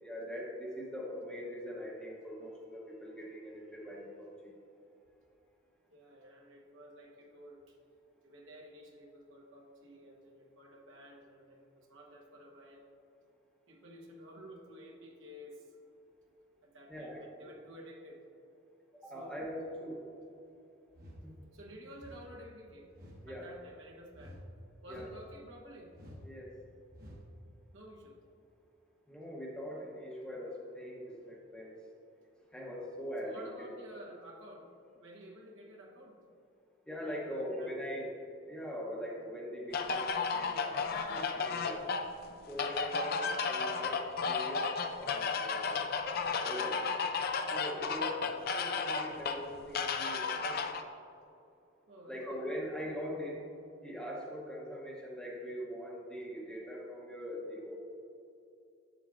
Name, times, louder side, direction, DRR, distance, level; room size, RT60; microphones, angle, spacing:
voice 1, 0.0-4.5 16.9-17.2 19.0-20.0 21.2-21.3 23.2-23.5 24.9-25.1 26.2-26.5 29.1-31.8 32.5-33.8 36.9-38.1 38.4-41.9 42.5-45.9 46.3-46.9 47.5-50.7 52.1-53.5 53.8-57.8, equal, 5° left, -3 dB, 0.9 m, -42 dB
voice 2, 5.9-7.8 8.2-12.8 13.7-15.7 16.6-18.2 19.0-19.5 21.5-22.9 23.3-24.4 24.8-25.9 27.7-28.2 33.2-36.2 37.0-37.8 51.9-52.4, equal, 70° right, -1 dB, 1.2 m, -52 dB
sound 1, 20.9-21.3 22.0-22.3 22.9-23.3 24.1-24.5 24.8-25.3 25.9-26.3 26.9-27.3, equal, 45° right, 1.2 m, -51 dB
sound 2, 39.7-50.8, left 5 dB, 45° left, 0.4 m, -34 dB
8.2 x 7.2 x 2.5 m, 2.7 s
head